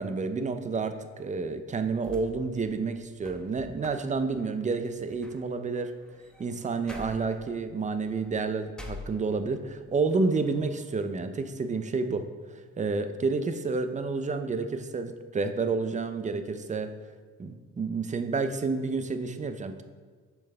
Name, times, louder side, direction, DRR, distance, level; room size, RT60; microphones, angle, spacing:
voice 1, 0.0-5.9 6.4-12.2 12.5-16.9 17.4-19.8, right 4 dB, 25° right, 9 dB, 0.5 m, -30 dB
sound 1, 2.0-9.7 10.1-10.9, left 1 dB, 5° left, 0.8 m, -48 dB
7.1 x 5.6 x 3.4 m, 1.5 s
cardioid pair, 90°, 30 cm